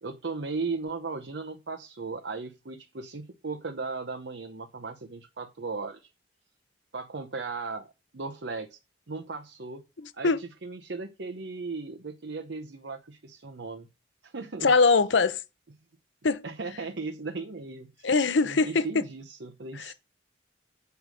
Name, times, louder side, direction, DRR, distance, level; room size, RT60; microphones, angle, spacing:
voice 1, 0.0-6.1 6.9-8.8 9.1-9.8 10.1-13.9 14.2-14.7 16.4-18.1 18.4-19.9, right 4 dB, 70° right, 0.9 m, -37 dB
voice 2, 10.0-10.4 14.6-15.4 16.2-16.4 18.0-18.8 19.7-19.9, left 4 dB, 80° left, 0.7 m, -22 dB
8.0 x 5.2 x 6.3 m
head